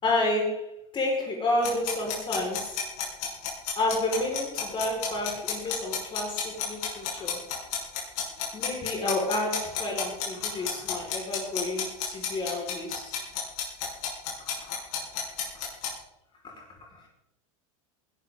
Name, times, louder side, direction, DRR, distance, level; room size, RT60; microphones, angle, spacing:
voice 1, 0.0-2.8 3.7-7.4 8.5-13.1 16.4-16.6 16.9-17.1, left 2 dB, 25° left, -1 dB, 5.1 m, -30 dB
sound 1, 1.6-15.9, left 8 dB, 60° left, 7.1 m, -31 dB
20.0 x 12.5 x 3.9 m, 0.82 s
supercardioid pair, 125°, 18 cm